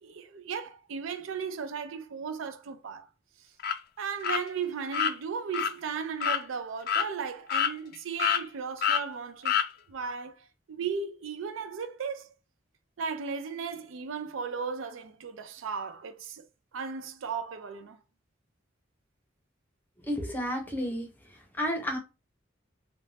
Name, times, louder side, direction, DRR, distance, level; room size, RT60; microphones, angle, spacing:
voice 1, 0.0-3.1 4.0-9.6 9.9-12.3 13.0-16.4 16.7-18.0, right 6 dB, 90° right, 0.4 m, -36 dB
sound 1, 3.6-3.8 4.2-4.4 4.9-5.1 5.5-5.7 6.2-6.4 6.9-7.1 7.5-7.9 8.2-8.4 8.8-9.0 9.5-9.7, left 8 dB, 50° left, 0.3 m, -26 dB
voice 2, 20.0-21.1 21.6-22.0, equal, 10° left, 0.6 m, -31 dB
2.5 x 2.1 x 3.2 m
head